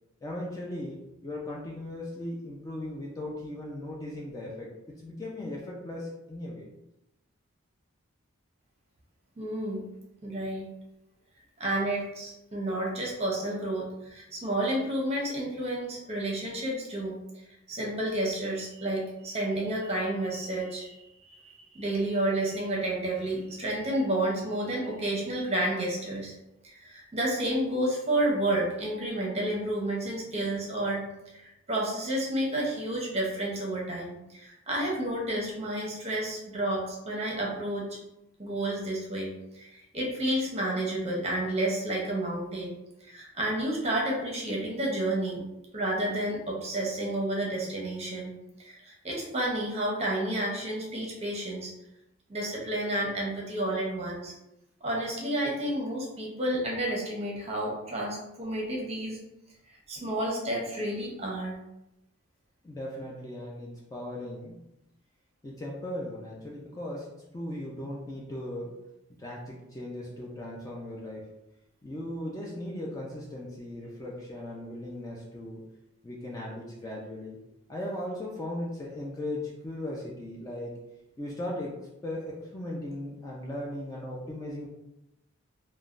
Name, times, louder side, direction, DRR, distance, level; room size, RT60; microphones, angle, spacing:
voice 1, 0.2-4.7 5.0-6.7 62.6-64.6 65.4-67.1 67.3-68.8 69.2-71.3 71.8-75.6 76.0-77.4 77.7-80.8 81.2-81.8 82.0-84.7, left 1 dB, 15° left, -3 dB, 0.3 m, -37 dB
voice 2, 9.4-9.8 10.2-10.7 11.6-17.2 17.7-26.3 26.6-31.1 31.3-38.0 38.4-42.7 43.0-45.4 45.7-48.3 48.6-51.7 52.3-54.3 54.8-59.2 59.7-61.5, right 1 dB, 30° right, -3 dB, 0.7 m, -30 dB
3.1 x 2.1 x 2.4 m, 0.89 s
head